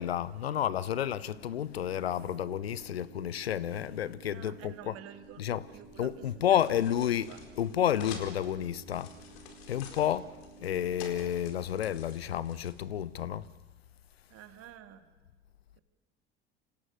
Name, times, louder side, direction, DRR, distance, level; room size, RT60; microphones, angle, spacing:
voice 1, 0.0-4.9 5.4-5.6 6.0-9.2 9.7-13.5, left 10 dB, 80° left, 0.8 m, -31 dB
sound 1, 1.0-11.0, right 5 dB, 75° right, 4.6 m, -55 dB
voice 2, 4.3-6.2 6.7-6.8 7.3-7.4 14.3-15.1, right 11 dB, 50° right, 2.4 m, -49 dB
sound 2, 5.2-13.3, left 6 dB, 60° left, 4.5 m, -50 dB
29.0 x 27.0 x 6.5 m
figure-of-eight pair, 65°, 31 cm